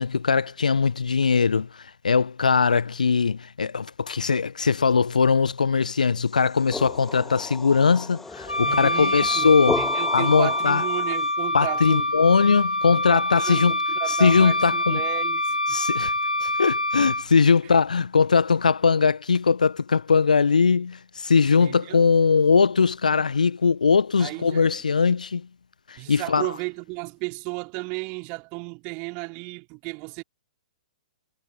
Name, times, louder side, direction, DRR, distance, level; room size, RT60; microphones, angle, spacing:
voice 1, 0.0-1.7 2.0-9.8 10.1-10.8 11.5-13.8 14.1-15.0 15.7-16.1 16.4-25.5 25.9-26.5, left 5 dB, 70° left, 0.5 m, -20 dB
sound 1, 6.3-11.3, left 3 dB, 5° left, 1.9 m, -34 dB
Wind instrument woodwind instrument, 8.5-17.3, left 1 dB, 85° left, 1.0 m, -25 dB
voice 2, 8.6-9.5 9.8-12.1 12.9-15.8 21.6-22.1 24.2-24.7 26.0-30.2, right 31 dB, 30° right, 3.3 m, -34 dB
figure-of-eight pair, 115°, 4 cm